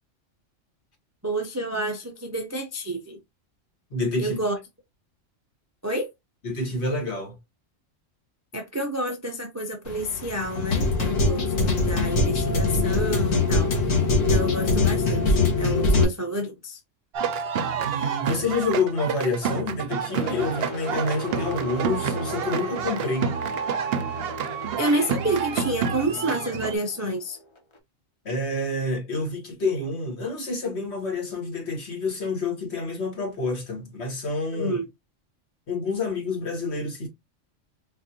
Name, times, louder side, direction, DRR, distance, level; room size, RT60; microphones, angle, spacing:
voice 1, 1.2-3.2 4.2-4.6 5.8-6.1 8.5-14.0 14.3-16.8 24.8-27.4 34.5-34.8, right 1 dB, 25° right, 0.3 m, -29 dB
voice 2, 3.9-4.4 6.4-7.4 17.8-23.3 28.2-34.8 35.7-37.1, left 3 dB, 60° left, 1.7 m, -28 dB
sound 1, 9.9-16.0, left 3 dB, 90° left, 1.5 m, -22 dB
sound 2, 17.1-26.8, right 7 dB, 60° right, 0.7 m, -29 dB
sound 3, 20.2-27.8, left 1 dB, 30° left, 0.6 m, -38 dB
4.1 x 2.5 x 2.7 m
omnidirectional pair, 1.3 m